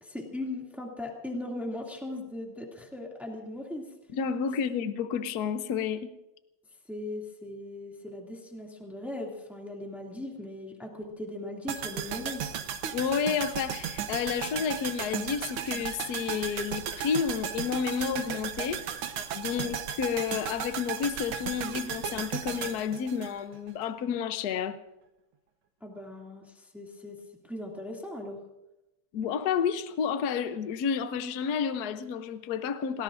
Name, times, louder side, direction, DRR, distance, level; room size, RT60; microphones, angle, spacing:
voice 1, 0.0-3.9 6.9-12.6 19.5-19.7 25.8-28.4, left 1 dB, ahead, 2.3 m, -39 dB
voice 2, 4.1-6.1 12.9-18.8 19.3-24.8 29.1-33.0, left 7 dB, 60° left, 1.2 m, -30 dB
sound 1, 11.7-23.9 24.1-24.2, right 8 dB, 85° right, 1.9 m, -35 dB
29.5 x 18.5 x 2.6 m
omnidirectional pair, 2.3 m